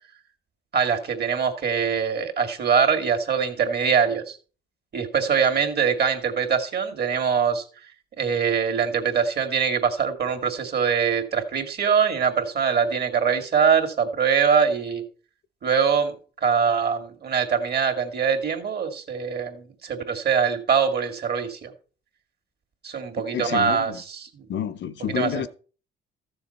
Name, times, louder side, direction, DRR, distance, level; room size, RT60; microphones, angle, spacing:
voice 1, 0.7-4.4 4.9-7.6 8.2-15.0 15.6-16.1 16.4-21.7 22.8-24.4 25.1-25.5, right 6 dB, 55° right, 2.3 m, -23 dB
voice 2, 23.3-24.0 24.5-25.5, left 9 dB, 65° left, 0.8 m, -29 dB
13.5 x 7.0 x 4.2 m
cardioid pair, 90°, 20 cm